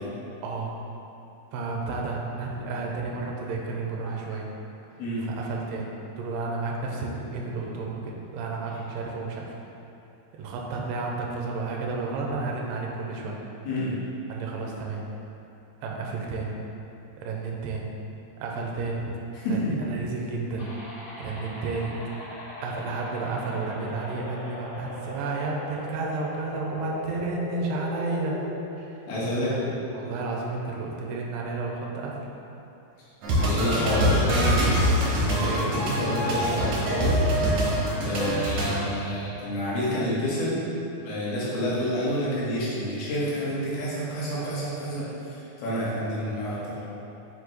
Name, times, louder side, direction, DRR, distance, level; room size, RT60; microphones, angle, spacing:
voice 1, 1.5-4.5 5.2-5.9 6.2-9.5 10.3-13.4 14.3-15.1 15.8-16.6 17.2-17.9 18.4-19.0 19.5-20.7 21.2-21.9 22.6-28.4 29.5-29.6 29.9-32.2 34.0-34.1, right 3 dB, 80° right, -1 dB, 2.2 m, -32 dB
voice 2, 19.4-19.7 29.1-29.5 30.0-30.1 33.4-34.7 35.2-37.3 38.0-40.6 41.0-46.8, equal, 80° left, -8 dB, 3.5 m, -28 dB
sound 1, 20.6-28.6, left 1 dB, 60° left, 1.7 m, -39 dB
sound 2, 33.2-38.8, equal, 65° right, 1.9 m, -24 dB
8.2 x 5.1 x 3.2 m, 2.8 s
omnidirectional pair, 4.5 m